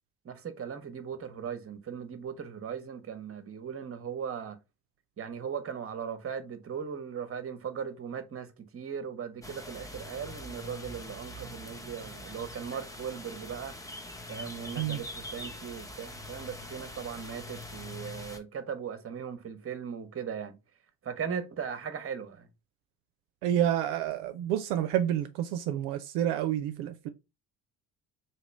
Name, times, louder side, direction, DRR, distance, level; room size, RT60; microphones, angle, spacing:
voice 1, 0.2-4.6 5.2-13.7 14.3-20.6 21.0-22.5, right 7 dB, 25° right, 0.8 m, -38 dB
sound 1, 9.4-18.4, left 1 dB, 5° left, 0.6 m, -43 dB
voice 2, 23.4-27.1, right 11 dB, 70° right, 0.5 m, -29 dB
3.0 x 3.0 x 4.4 m
hypercardioid pair, 50°, 49 cm